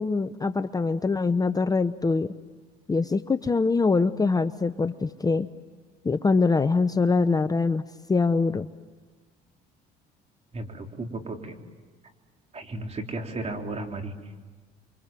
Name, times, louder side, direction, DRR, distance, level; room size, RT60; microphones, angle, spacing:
voice 1, 0.0-2.3 2.9-5.5 6.0-7.8 8.1-8.7, left 4 dB, 20° left, 11 dB, 0.8 m, -23 dB
voice 2, 10.5-11.6 12.5-14.1, right 2 dB, 35° right, 3 dB, 4.0 m, -34 dB
30.0 x 24.5 x 7.6 m, 1.3 s
supercardioid pair, 95°, 20 cm